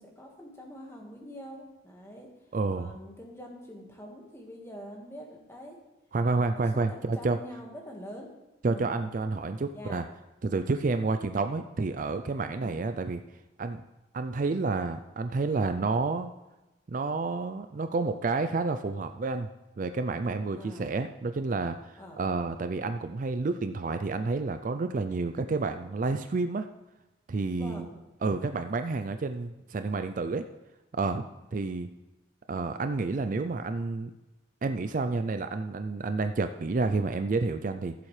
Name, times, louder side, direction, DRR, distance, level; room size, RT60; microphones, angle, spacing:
voice 1, 0.0-2.3 2.7-5.8 6.3-8.3 8.6-9.0 9.7-10.0 12.5-12.8 20.6-21.0 22.0-22.3 27.6-27.9, equal, 15° left, 0 dB, 1.6 m, -45 dB
voice 2, 2.5-2.9 6.1-7.4 8.6-10.0 10.4-13.2 13.6-13.8 14.1-16.3 16.9-19.5 19.8-26.7 27.3-27.8 28.2-30.5 31.0-31.2 31.5-31.9 32.5-34.1 34.6-37.9, right 3 dB, 40° right, 9 dB, 0.4 m, -29 dB
15.5 x 7.3 x 3.3 m, 1.0 s
head